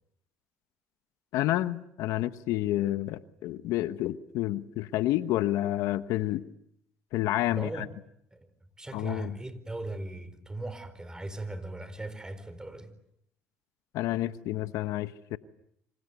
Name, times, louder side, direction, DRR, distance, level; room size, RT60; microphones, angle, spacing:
voice 1, 1.3-6.4 7.1-7.9 8.9-9.3 13.9-15.4, left 15 dB, 75° left, 1.1 m, -29 dB
voice 2, 7.5-7.9 8.3-8.5 8.8-12.9, right 2 dB, 10° right, 4.5 m, -38 dB
28.0 x 26.0 x 8.1 m
supercardioid pair, 85°, 6 cm